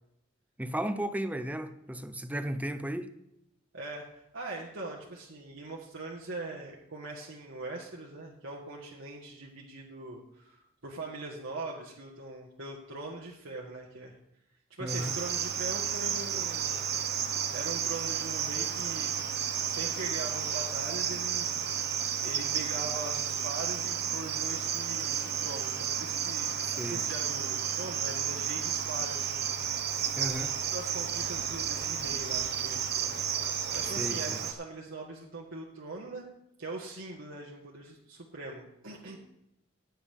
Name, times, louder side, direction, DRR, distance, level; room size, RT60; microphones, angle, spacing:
voice 1, 0.6-3.1 14.8-15.2 26.8-27.0 30.2-30.5 33.8-34.4, right 1 dB, 10° right, 10 dB, 0.7 m, -34 dB
voice 2, 3.7-4.1 4.3-14.1 14.8-16.8 17.5-19.3 19.6-21.5 22.2-29.8 30.3-30.4 30.7-36.2 36.6-39.2, right 2 dB, 75° right, -3 dB, 1.6 m, -41 dB
Cricket, 14.9-34.5, right 8 dB, 55° right, 1.1 m, -32 dB
15.0 x 9.3 x 3.6 m, 0.82 s
head